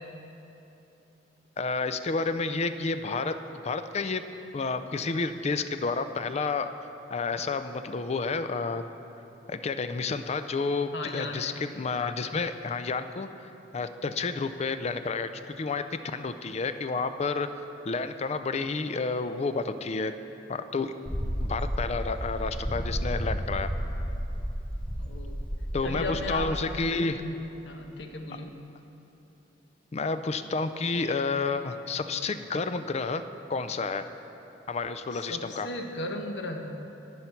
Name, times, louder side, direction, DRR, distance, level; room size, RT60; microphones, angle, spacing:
voice 1, 1.6-3.4 3.6-4.2 4.5-6.7 7.1-8.8 9.5-13.3 13.7-17.5 17.9-20.1 20.5-20.9 21.4-23.7 25.7-27.2 29.9-33.2 33.5-34.1 34.7-35.7, left 4 dB, 35° left, 10 dB, 0.4 m, -30 dB
voice 2, 10.9-11.6 25.0-25.4 25.8-26.5 27.2-27.4 27.6-28.5 35.1-36.7, left 2 dB, 65° left, 3 dB, 1.1 m, -36 dB
sound 1, 21.1-26.8, equal, 5° left, 0.7 m, -32 dB
12.5 x 9.5 x 4.5 m, 2.9 s
head